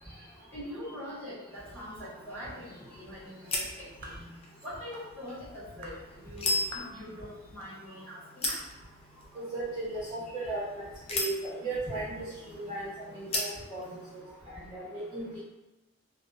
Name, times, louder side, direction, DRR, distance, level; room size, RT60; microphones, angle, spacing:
voice 1, 0.0-4.2 4.6-8.5, equal, 10° left, -12 dB, 1.5 m, -43 dB
sound 1, 1.5-14.2, left 2 dB, 30° left, 0.4 m, -39 dB
sound 2, 4.0-4.3 4.9-5.1 5.8-6.0 6.7-7.0 7.6-7.7 8.5-8.7, right 1 dB, 50° right, 0.4 m, -45 dB
voice 2, 9.3-13.8 14.1-15.4, right 2 dB, 25° right, -10 dB, 0.7 m, -37 dB
2.7 x 2.0 x 2.4 m, 1.0 s
head